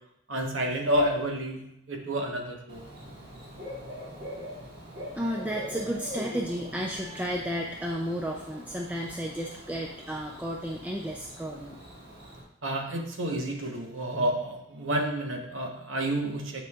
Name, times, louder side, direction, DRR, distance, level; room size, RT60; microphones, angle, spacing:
voice 1, 0.3-2.8 12.6-16.6, right 1 dB, 75° right, 2 dB, 1.1 m, -30 dB
Bird / Cricket, 2.7-12.4, equal, 55° right, 1.6 m, -43 dB
voice 2, 5.1-11.8, equal, 10° right, -1 dB, 0.4 m, -33 dB
9.1 x 5.1 x 2.4 m, 0.77 s
head